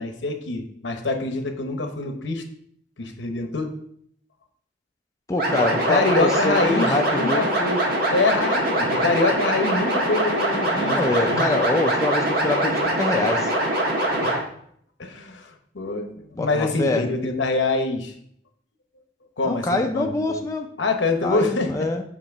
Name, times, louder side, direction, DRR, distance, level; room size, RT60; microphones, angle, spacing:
voice 1, 0.0-2.4 3.0-3.7 5.9-7.8 8.1-11.4 14.1-14.3 15.0-18.1 19.4-20.4 20.8-21.9, left 3 dB, 80° left, 5 dB, 0.9 m, -25 dB
voice 2, 5.3-7.5 10.7-13.5 16.3-17.0 19.4-20.7 21.2-22.0, left 2 dB, 15° left, 3 dB, 0.4 m, -25 dB
sound 1, 5.4-14.4, right 1 dB, 50° right, 1.4 m, -23 dB
7.1 x 2.9 x 5.3 m, 0.67 s
head